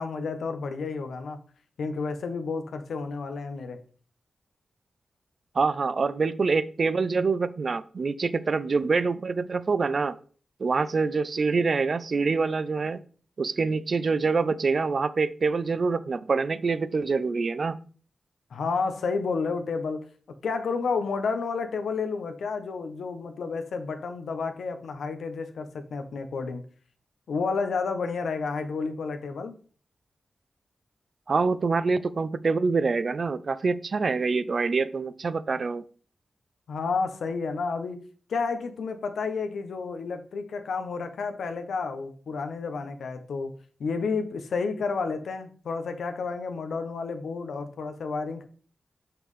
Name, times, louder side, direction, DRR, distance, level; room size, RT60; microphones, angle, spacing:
voice 1, 0.0-1.4 1.8-3.8 18.5-20.1 20.4-26.6 27.3-29.5 36.7-38.0 38.3-43.5 43.8-48.4, left 4 dB, 90° left, 7 dB, 0.8 m, -31 dB
voice 2, 5.5-10.2 10.6-13.0 13.4-17.8 31.3-35.8, right 4 dB, 60° right, 15 dB, 0.4 m, -25 dB
5.8 x 5.5 x 3.2 m, 0.42 s
cardioid pair, 60°, 0 cm